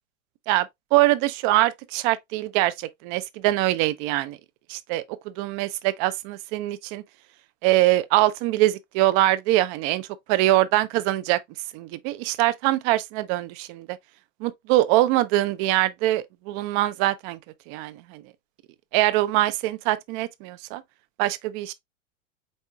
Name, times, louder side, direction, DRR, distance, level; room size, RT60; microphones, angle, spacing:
voice 1, 0.5-4.4 4.7-7.0 7.6-11.4 11.7-14.0 14.4-17.4 17.7-18.2 18.9-20.8 21.2-21.7, right 16 dB, 40° right, 0.5 m, -23 dB
4.3 x 4.2 x 2.2 m
figure-of-eight pair, 90°, 39 cm